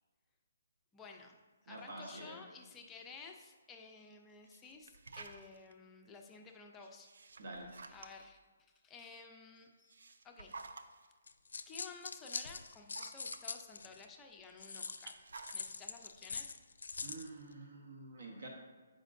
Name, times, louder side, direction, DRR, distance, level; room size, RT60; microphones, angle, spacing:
voice 1, 0.9-1.4 1.6-7.1 7.9-9.9 10.2-10.6 11.7-15.1 15.5-16.5, left 4 dB, 10° left, 2 dB, 0.4 m, -54 dB
voice 2, 1.7-2.4 7.4-7.7 17.0-18.5, right 2 dB, 60° right, 1 dB, 0.9 m, -48 dB
sound 1, 4.5-5.7 6.8-8.4 9.7-11.1 11.8-11.9 12.4-13.4 14.8-15.8, right 3 dB, 75° right, 0.4 m, -52 dB
sound 2, 11.3-14.0 14.6-17.3, left 4 dB, 85° left, 0.4 m, -43 dB
7.2 x 5.1 x 2.6 m, 1.4 s
hypercardioid pair, 165°, 0 cm